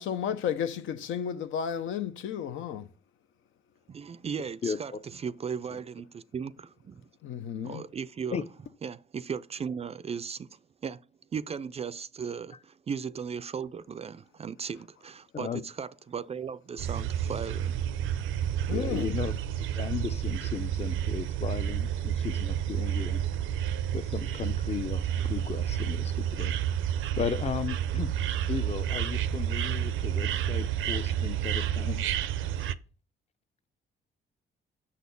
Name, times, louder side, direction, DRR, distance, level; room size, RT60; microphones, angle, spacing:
voice 1, 0.0-2.9 7.2-7.8 18.7-19.2, left 8 dB, 80° left, 0.8 m, -33 dB
voice 2, 3.9-7.1 7.6-8.5 8.8-17.9, right 6 dB, 30° right, 0.4 m, -37 dB
sound 1, 16.8-32.7, right 10 dB, 80° right, 0.5 m, -30 dB
voice 3, 18.7-23.2 23.9-26.6 27.2-28.1 28.5-32.1, left 7 dB, 30° left, 0.6 m, -35 dB
7.4 x 4.2 x 6.8 m
cardioid pair, 90°, 20 cm